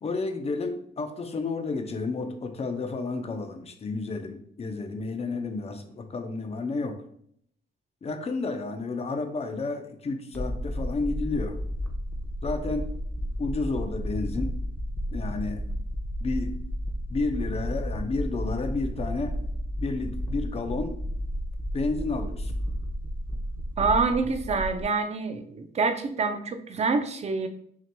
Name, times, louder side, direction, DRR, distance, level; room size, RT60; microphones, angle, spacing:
voice 1, 0.0-7.0 8.0-11.6 12.4-12.9 13.4-14.5 15.1-15.6 16.2-16.5 17.1-19.3 19.8-21.0 21.7-22.5, left 3 dB, 30° left, 6 dB, 0.6 m, -31 dB
sound 1, 10.3-24.8, equal, 10° left, 0.9 m, -32 dB
voice 2, 23.8-27.5, right 4 dB, 35° right, 8 dB, 0.5 m, -26 dB
5.8 x 2.8 x 2.2 m, 0.67 s
cardioid pair, 90°, 20 cm